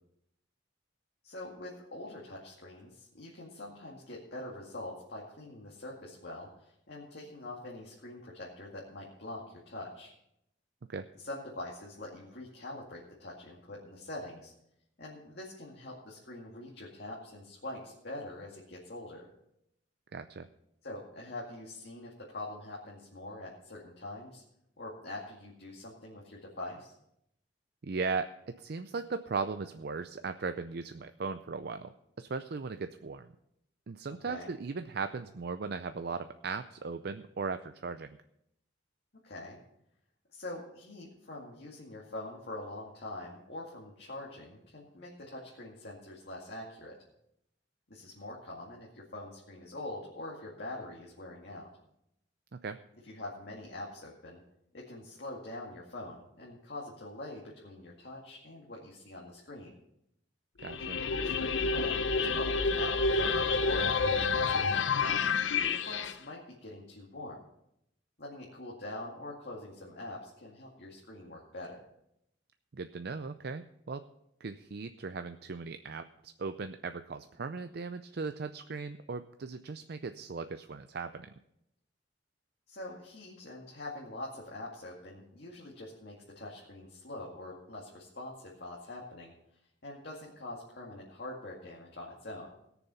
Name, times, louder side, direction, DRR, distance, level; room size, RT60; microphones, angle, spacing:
voice 1, 1.2-10.1 11.2-14.5 15.0-19.3 20.8-24.4 24.8-26.9 34.2-34.5 39.2-39.6 40.3-47.0 47.9-51.7 53.0-54.4 54.7-59.8 60.9-65.2 65.6-67.4 68.2-71.8 82.7-89.3 89.8-92.5, left 1 dB, 60° left, -4 dB, 2.2 m, -44 dB
voice 2, 20.1-20.5 27.8-33.3 33.9-38.2 52.6-52.8 60.6-61.0 72.7-74.0 74.4-81.3, right 4 dB, 55° right, 9 dB, 0.5 m, -38 dB
sound 1, 60.6-66.1, left 4 dB, 85° left, 0.7 m, -29 dB
17.5 x 7.0 x 5.7 m, 0.78 s
head